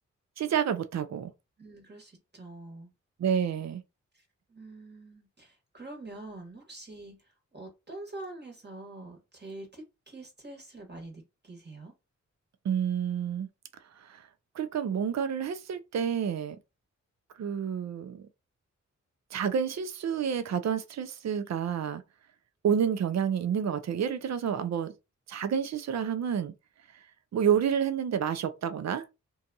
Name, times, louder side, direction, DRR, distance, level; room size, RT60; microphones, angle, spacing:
voice 1, 0.4-1.3 3.2-3.8 12.6-13.5 14.0-14.3 14.6-16.6 17.4-18.2 19.3-22.0 22.6-24.9 25.3-26.5 27.3-29.1, right 8 dB, 65° right, 0.5 m, -29 dB
voice 2, 1.6-2.9 4.1-11.9, right 2 dB, 35° right, 1.3 m, -45 dB
2.6 x 2.3 x 2.6 m
cardioid pair, 45°, 30 cm